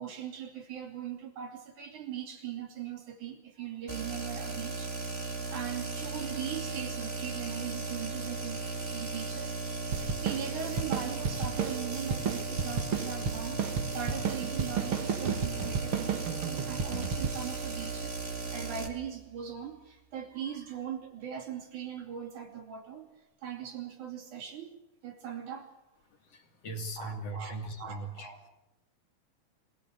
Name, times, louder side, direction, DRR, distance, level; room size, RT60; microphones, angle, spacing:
voice 1, 0.0-4.9 5.5-9.6 9.9-18.2 18.5-23.1 23.4-25.7 27.0-28.4, right 9 dB, 75° right, 3 dB, 4.2 m, -40 dB
sound 1, 3.9-18.9, right 3 dB, 25° right, 2.3 m, -36 dB
sound 2, 9.9-18.8, right 6 dB, 50° right, 2.1 m, -34 dB
voice 2, 26.2-28.3, right 2 dB, 55° left, 4 dB, 3.2 m, -39 dB
25.5 x 17.0 x 8.1 m, 0.94 s
omnidirectional pair, 3.5 m